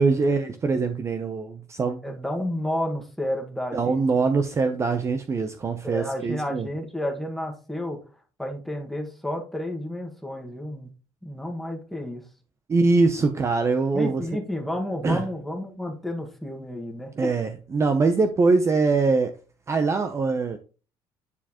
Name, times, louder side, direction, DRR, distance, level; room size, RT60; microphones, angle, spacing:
voice 1, 0.0-2.1 3.7-6.7 12.7-14.2 15.0-15.2 17.2-19.3 19.7-20.6, right 4 dB, 30° right, 7 dB, 0.7 m, -23 dB
voice 2, 2.0-4.0 5.8-8.0 8.4-10.9 11.2-12.3 13.9-17.3, left 1 dB, ahead, 2 dB, 1.6 m, -31 dB
9.7 x 4.5 x 2.9 m, 0.35 s
cardioid pair, 135°, 10 cm